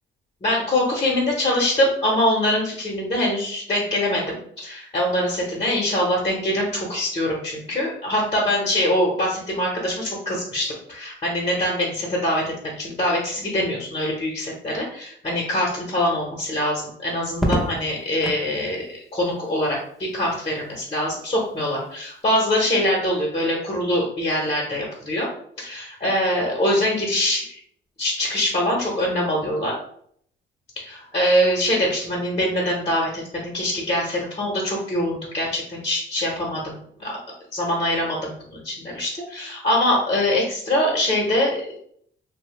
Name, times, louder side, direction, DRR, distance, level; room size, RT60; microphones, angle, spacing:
voice 1, 0.4-18.8 19.1-25.3 25.6-27.6 28.0-29.7 30.8-37.1 37.5-41.8, left 1 dB, 30° left, -3 dB, 0.8 m, -23 dB
Crackle, 17.3-18.5 20.1-20.6, right 1 dB, ahead, 0.6 m, -27 dB
2.6 x 2.0 x 3.0 m, 0.65 s
cardioid pair, 90°, 20 cm